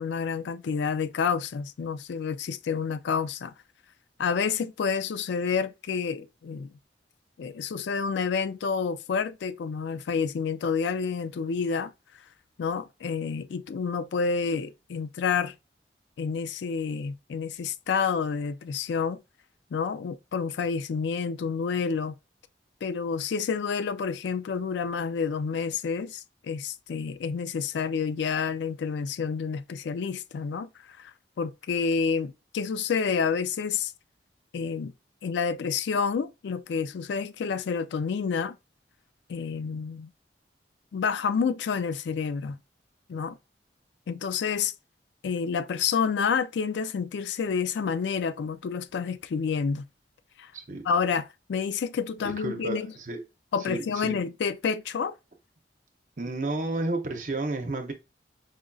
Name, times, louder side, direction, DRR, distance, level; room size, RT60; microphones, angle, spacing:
voice 1, 0.0-3.5 4.2-6.7 7.4-11.9 12.6-15.5 16.2-19.2 19.7-22.1 22.8-33.9 34.5-34.9 35.2-38.6 39.3-40.1 40.9-42.6 43.1-43.4 44.1-44.7 45.2-49.9 50.4-50.5 50.9-52.9 53.5-55.2, left 6 dB, 80° left, 0.3 m, -29 dB
voice 2, 50.5-50.9 52.2-53.2 53.6-54.2 56.2-57.9, right 2 dB, 45° right, 0.7 m, -32 dB
4.9 x 2.5 x 2.3 m
head